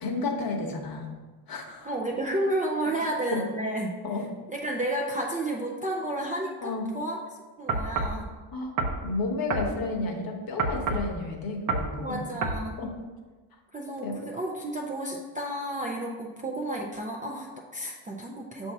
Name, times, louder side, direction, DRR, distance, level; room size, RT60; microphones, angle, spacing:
voice 1, 0.0-1.1 1.5-1.9 3.3-3.4 4.0-4.2 6.6-6.8 8.5-12.3 12.8-12.9 14.0-14.2, left 3 dB, 45° left, 1 dB, 1.0 m, -32 dB
voice 2, 1.8-4.0 4.5-7.2 7.6-8.3 9.6-9.8 11.8-12.8 13.7-18.7, right 1 dB, 20° right, -2 dB, 0.4 m, -32 dB
sound 1, 7.7-8.2 8.8-9.0 9.5-9.7 10.6-11.1 11.7-11.9 12.4-12.6, right 4 dB, 50° right, 0.7 m, -28 dB
7.0 x 2.7 x 5.7 m, 1.3 s
cardioid pair, 145°, 48 cm